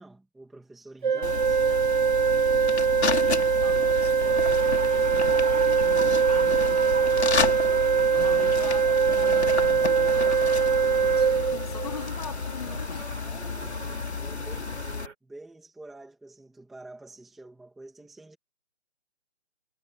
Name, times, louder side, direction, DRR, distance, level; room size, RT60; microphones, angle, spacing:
voice 1, 0.0-1.9 8.1-8.5 13.2-14.9 15.2-18.4, right 2 dB, ahead, 1.0 m, -49 dB
Organ, 1.0-12.1, right 6 dB, 40° right, 0.8 m, -22 dB
sound 1, 1.2-15.1, left 5 dB, 60° left, 2.5 m, -32 dB
voice 2, 3.0-4.5 5.3-7.6 8.1-13.1, left 7 dB, 30° left, 2.5 m, -42 dB
sound 2, 4.2-15.1, right 5 dB, 80° right, 3.4 m, -39 dB
hypercardioid pair, 175°, 37 cm